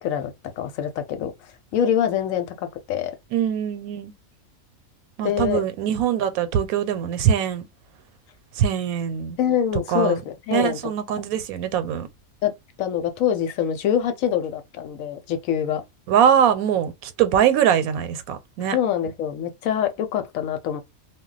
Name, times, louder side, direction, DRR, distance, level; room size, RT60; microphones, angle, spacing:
voice 1, 0.0-1.3 1.7-3.1 5.2-5.6 9.4-10.8 12.4-12.5 12.8-15.8 18.7-20.8, left 9 dB, 75° left, 1.0 m, -25 dB
voice 2, 3.3-4.1 5.2-7.7 8.6-9.4 9.9-10.2 10.5-12.1 16.1-18.8, right 9 dB, 90° right, 1.0 m, -22 dB
2.2 x 2.1 x 3.8 m
omnidirectional pair, 1.5 m